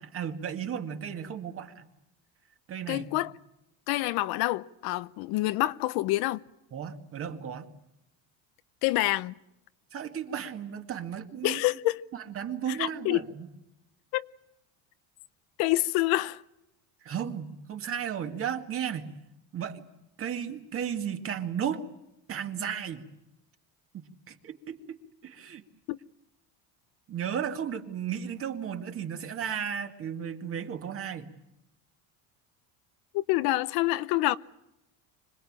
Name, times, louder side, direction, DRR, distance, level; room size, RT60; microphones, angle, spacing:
voice 1, 0.0-1.9 2.7-3.1 6.7-7.7 9.9-11.6 12.1-13.5 17.0-19.1 19.5-19.8 20.2-21.8 22.3-23.0 23.9-25.0 25.2-25.6 27.1-31.3, right 8 dB, 35° right, 2.1 m, -34 dB
voice 2, 2.9-3.3 3.9-6.4 8.8-9.3 11.4-12.0 12.7-13.2 14.1-14.3 15.6-16.4 25.9-26.0 33.1-34.4, left 18 dB, 70° left, 0.9 m, -27 dB
26.0 x 19.5 x 8.8 m
cardioid pair, 160°, 39 cm